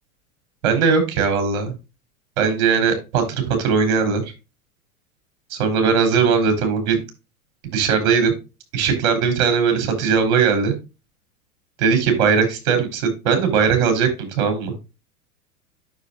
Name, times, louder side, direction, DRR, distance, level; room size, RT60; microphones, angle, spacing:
voice 1, 0.6-1.7 2.4-4.2 5.5-7.0 7.6-8.3 8.7-10.7 11.8-14.7, right 6 dB, 50° right, 5 dB, 3.9 m, -19 dB
9.4 x 6.9 x 2.5 m, 0.27 s
figure-of-eight pair, 95°, 44 cm